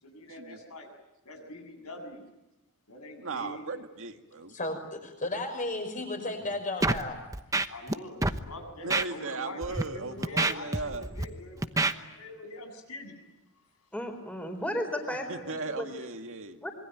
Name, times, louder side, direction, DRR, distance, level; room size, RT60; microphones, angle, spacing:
voice 1, 0.0-0.9 1.2-2.3 2.9-3.6 7.7-13.2 13.6-13.7, left 1 dB, 85° left, 5 dB, 7.7 m, -44 dB
voice 2, 3.2-4.6 8.8-11.1 15.3-16.6, right 3 dB, 65° right, 5 dB, 2.1 m, -37 dB
voice 3, 4.5-7.2, left 2 dB, 35° left, 6 dB, 5.8 m, -33 dB
Scratching (performance technique), 6.8-7.0 7.3-8.0 8.2-8.4 8.9-9.1 9.6-9.8 10.2-11.3 11.6-11.9, right 2 dB, 15° right, 1.0 m, -27 dB
voice 4, 13.9-15.5 15.8-15.9 16.6-16.7, equal, 5° left, 5 dB, 4.0 m, -34 dB
26.5 x 23.0 x 9.1 m, 0.95 s
head